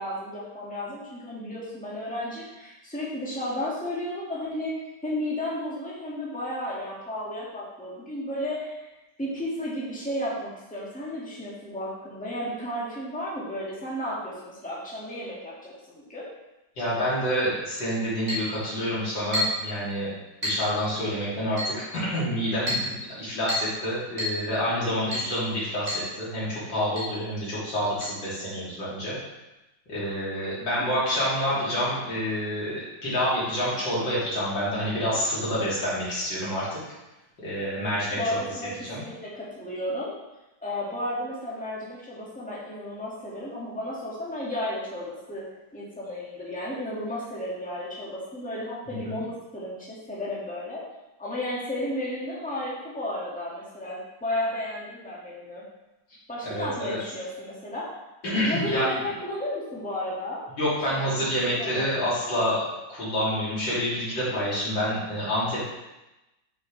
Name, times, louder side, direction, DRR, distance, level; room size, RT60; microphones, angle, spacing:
voice 1, 0.0-8.9 9.2-16.2 31.6-31.7 38.2-40.1 40.6-45.4 45.7-50.8 51.2-55.6 56.3-57.9 58.5-60.4 60.9-61.2 61.6-62.0, left 1 dB, 5° left, -7 dB, 1.9 m, -33 dB
voice 2, 16.8-20.1 20.4-22.8 23.1-29.1 29.9-36.8 37.4-38.4 38.9-39.0 48.9-49.1 56.5-57.0 58.3-59.0 60.6-65.6, equal, 85° left, -9 dB, 3.8 m, -28 dB
Chink clink, 18.3-18.5 19.3-19.7 20.4-20.7 21.6-21.8 22.7-22.9 23.5-23.8 24.2-24.4 25.1-25.3 25.9-26.1 26.3-26.4 27.0-27.1 28.0-28.1, left 1 dB, 30° right, 3.2 m, -28 dB
8.6 x 6.4 x 3.3 m, 1.0 s
omnidirectional pair, 2.0 m